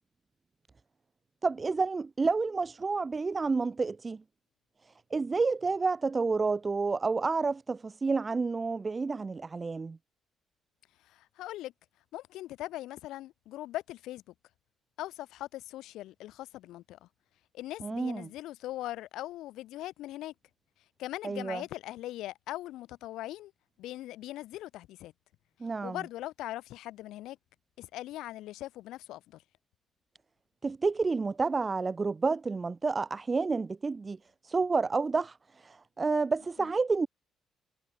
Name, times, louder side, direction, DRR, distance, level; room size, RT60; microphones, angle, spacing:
voice 1, 1.4-4.2 5.1-10.0 17.8-18.3 21.2-21.6 25.6-26.0 30.6-34.2 34.4-37.1, right 4 dB, 30° right, 0.4 m, -29 dB
voice 2, 11.0-11.7 12.1-14.3 15.0-17.1 17.5-20.3 21.0-23.5 23.8-25.1 25.8-27.4 27.8-29.4, left 15 dB, 90° left, 0.7 m, -40 dB
cardioid pair, 90°, 0 cm